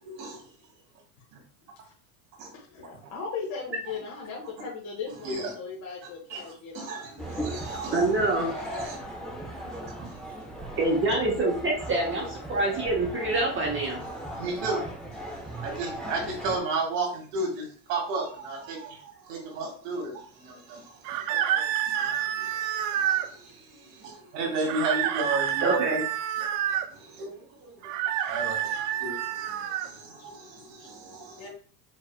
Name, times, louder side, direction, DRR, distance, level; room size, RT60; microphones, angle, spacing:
voice 1, 0.0-0.4 2.4-2.5 5.2-5.4 6.3-6.4 6.8-8.0 8.7-9.0 10.0-10.1 14.4-14.8 15.6-26.1 26.9-27.9 28.2-31.4, right 3 dB, 75° right, 0 dB, 1.9 m, -34 dB
voice 2, 2.5-7.2 23.4-23.5 30.8-30.9 31.4-31.5, left 5 dB, 35° left, -4 dB, 1.3 m, -38 dB
sound 1, 7.2-16.6, right 1 dB, ahead, 0.9 m, -37 dB
voice 3, 7.9-8.5 10.8-14.0 25.6-26.0, right 2 dB, 25° right, -1 dB, 1.1 m, -26 dB
sound 2, 21.0-23.3 24.7-26.9 27.8-29.9, right 10 dB, 40° right, 0.5 m, -28 dB
5.0 x 3.4 x 2.2 m, 0.44 s
supercardioid pair, 110°, 48 cm